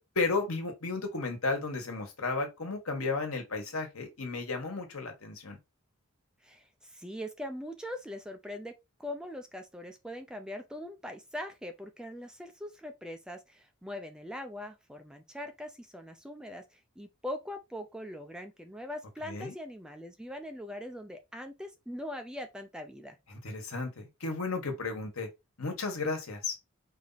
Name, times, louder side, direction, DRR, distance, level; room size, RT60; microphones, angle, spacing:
voice 1, 0.1-5.6 19.2-19.5 23.3-25.3 25.6-26.5, left 3 dB, 85° left, 1.4 m, -33 dB
voice 2, 6.4-8.7 9.0-23.2, left 1 dB, 5° right, 0.4 m, -41 dB
4.8 x 2.7 x 4.1 m
head